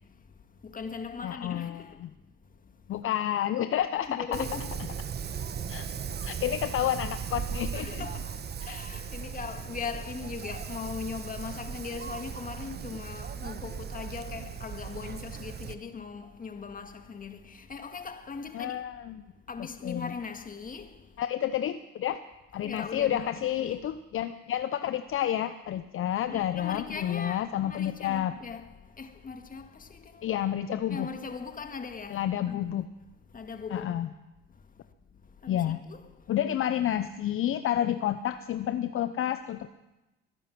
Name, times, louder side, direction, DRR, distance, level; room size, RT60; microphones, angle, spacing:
voice 1, 0.6-2.1 4.0-4.8 6.1-6.3 7.8-18.8 19.5-21.0 22.6-23.9 26.3-28.7 29.0-30.3 30.9-32.7 33.3-33.9 35.4-36.1, left 5 dB, 30° left, 1.8 m, -39 dB
voice 2, 1.2-2.1 2.9-4.4 5.7-5.9 6.2-8.0 8.6-8.7 18.5-19.2 19.8-20.1 21.2-22.2 22.5-28.3 30.2-31.1 32.1-32.8 33.7-34.1 35.5-35.8 36.3-39.7, left 11 dB, 45° left, 0.8 m, -30 dB
Wind, 4.3-15.7, right 7 dB, 35° right, 1.1 m, -37 dB
21.5 x 10.0 x 6.0 m
hypercardioid pair, 75°, 30 cm